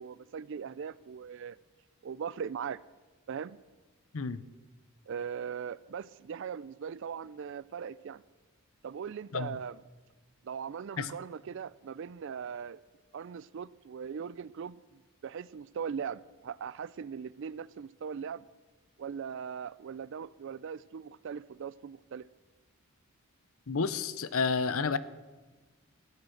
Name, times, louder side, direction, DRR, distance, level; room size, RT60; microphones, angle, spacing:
voice 1, 0.0-1.6 2.0-2.8 3.3-3.6 5.1-8.2 8.8-9.8 10.4-12.8 13.1-18.4 19.0-22.3, right 7 dB, 55° right, 0.3 m, -40 dB
voice 2, 23.7-25.0, left 4 dB, 70° left, 0.7 m, -30 dB
14.5 x 8.9 x 7.9 m
head